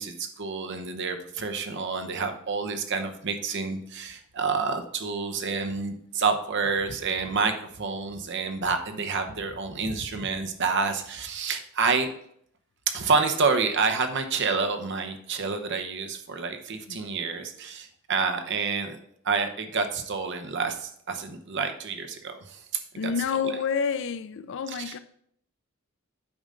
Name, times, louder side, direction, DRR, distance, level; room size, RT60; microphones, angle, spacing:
voice 1, 0.0-12.1 12.9-19.0 19.2-23.6 24.7-25.0, right 4 dB, 60° right, 0.9 m, -28 dB
voice 2, 23.0-25.0, left 6 dB, 65° left, 0.4 m, -28 dB
8.7 x 5.4 x 3.8 m
head